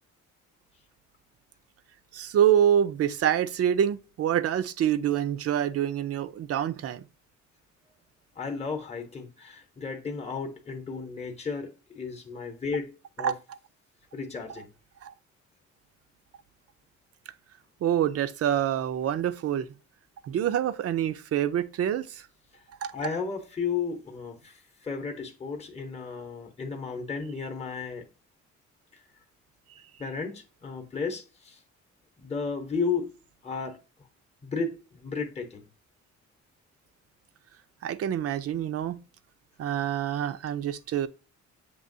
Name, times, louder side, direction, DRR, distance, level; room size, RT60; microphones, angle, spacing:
voice 1, 2.1-7.0 13.2-13.3 15.0-15.1 17.8-19.7 20.2-22.2 22.8-22.9 37.8-39.0 39.6-41.1, right 10 dB, 55° right, 0.5 m, -26 dB
voice 2, 8.4-13.4 14.1-14.7 22.9-28.1 30.0-31.6 32.2-33.1 33.4-33.8 34.4-35.6, left 5 dB, 20° left, 0.9 m, -34 dB
6.8 x 2.9 x 2.6 m
cardioid pair, 90°, 30 cm